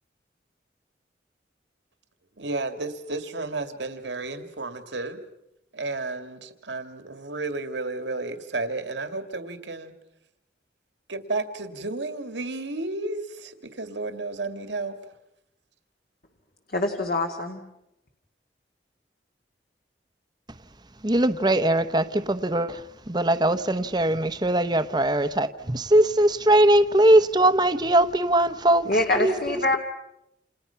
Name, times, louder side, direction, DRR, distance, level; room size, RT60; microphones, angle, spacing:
voice 1, 2.4-5.2 5.7-9.9 11.1-15.0, right 3 dB, 90° right, 8 dB, 2.3 m, -32 dB
voice 2, 16.7-17.6 28.8-29.8, left 2 dB, 55° left, 3 dB, 2.3 m, -24 dB
voice 3, 21.0-22.8 23.1-28.8 29.2-29.8, right 1 dB, 25° right, 11 dB, 1.0 m, -21 dB
29.5 x 28.0 x 5.8 m, 0.85 s
head